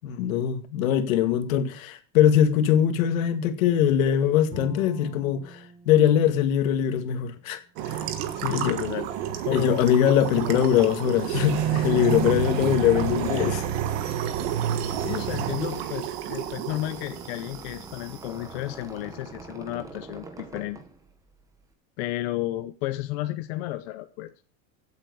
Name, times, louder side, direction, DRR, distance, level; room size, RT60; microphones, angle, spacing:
voice 1, 0.0-7.6 8.5-8.8 9.5-13.6, left 10 dB, 80° left, 2.2 m, -22 dB
Bowed string instrument, 4.5-7.6, right 1 dB, 25° right, 4.6 m, -45 dB
voice 2, 7.8-9.8 11.7-12.2 14.1-14.2 15.0-20.8 22.0-24.3, left 16 dB, 50° left, 0.9 m, -33 dB
sound 1, 7.8-18.2, right 10 dB, 50° right, 1.7 m, -29 dB
Squeak, 12.4-21.7, right 3 dB, 10° right, 1.0 m, -44 dB
15.5 x 8.1 x 6.4 m
supercardioid pair, 180°, 41 cm